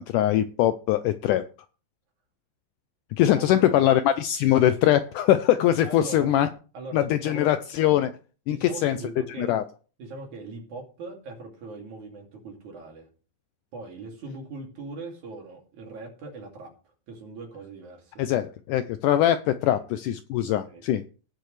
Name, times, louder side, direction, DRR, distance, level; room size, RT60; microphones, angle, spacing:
voice 1, 0.0-1.4 3.1-6.5 6.9-8.1 8.5-9.0 9.4-9.6 18.2-21.0, left 12 dB, 80° left, 11 dB, 1.9 m, -22 dB
voice 2, 3.3-3.9 5.8-6.3 6.7-7.5 8.5-9.6 10.0-13.1 13.7-18.2 19.7-19.8 20.5-20.8, right 3 dB, 60° right, 1 dB, 3.8 m, -40 dB
18.0 x 6.6 x 3.2 m, 0.37 s
omnidirectional pair, 4.1 m